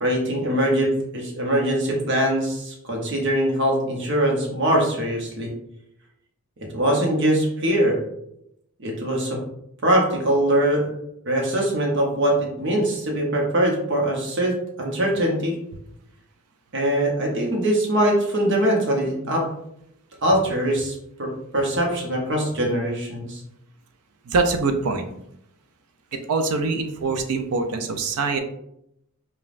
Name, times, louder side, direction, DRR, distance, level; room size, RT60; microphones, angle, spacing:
voice 1, 0.0-5.5 6.7-8.0 8.8-9.4 9.8-10.9 11.3-15.6 16.7-19.4 20.2-23.4, right 1 dB, 55° right, 0 dB, 0.9 m, -22 dB
voice 2, 24.3-25.0 26.1-28.4, right 3 dB, 80° right, 7 dB, 0.5 m, -24 dB
5.0 x 2.3 x 2.5 m, 0.78 s
head